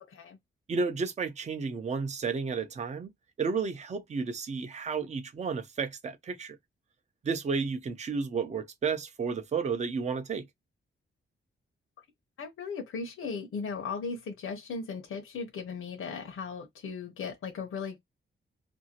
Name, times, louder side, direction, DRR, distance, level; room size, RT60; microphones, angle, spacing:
voice 1, 0.1-0.4 12.4-18.0, left 5 dB, 85° left, 0.8 m, -37 dB
voice 2, 0.7-3.1 3.4-6.6 7.2-10.5, right 5 dB, 35° right, 0.5 m, -32 dB
2.7 x 2.6 x 2.8 m
wide cardioid pair, 175°, 21 cm